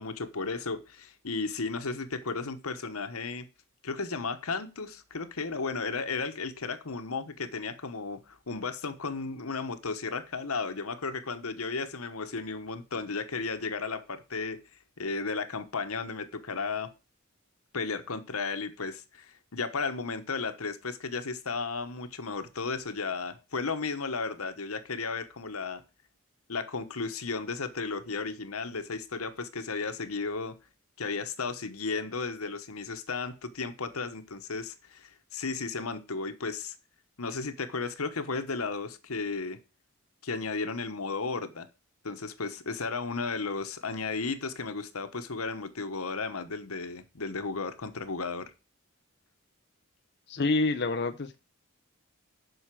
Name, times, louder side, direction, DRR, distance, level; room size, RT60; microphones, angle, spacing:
voice 1, 0.0-3.5 3.8-14.6 15.0-16.9 17.7-25.8 26.5-30.6 31.0-36.7 37.2-39.6 40.2-41.7 42.0-48.5, left 4 dB, 85° left, 1.2 m, -34 dB
voice 2, 50.3-51.4, left 3 dB, 50° left, 0.7 m, -27 dB
8.1 x 5.7 x 7.5 m
head